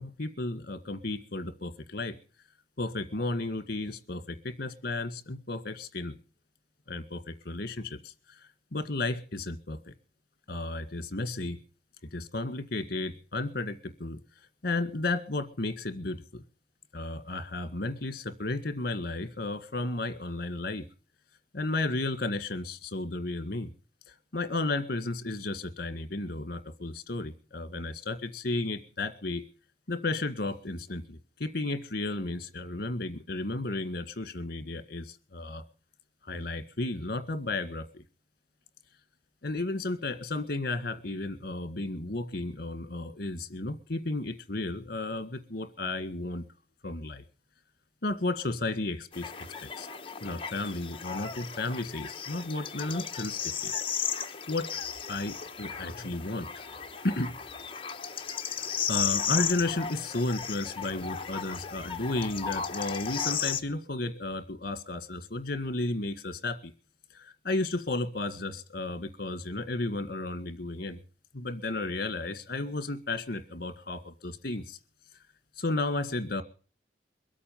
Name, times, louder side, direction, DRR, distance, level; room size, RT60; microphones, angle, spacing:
voice 1, 0.0-2.2 2.8-6.1 6.9-8.1 8.7-9.9 10.5-11.6 12.1-14.2 14.6-16.4 16.9-20.8 21.5-23.7 24.1-29.4 29.9-35.6 36.2-38.0 39.4-46.4 46.8-47.2 48.0-49.3 49.8-49.9 50.2-53.7 54.5-54.8 55.1-56.5 57.0-57.4 58.6-66.7 67.1-71.0 71.3-74.8 75.6-76.4, left 2 dB, 60° left, 11 dB, 1.8 m, -33 dB
sound 1, 49.1-63.6, left 7 dB, 30° left, 1.1 m, -35 dB
22.5 x 8.5 x 7.2 m, 0.40 s
head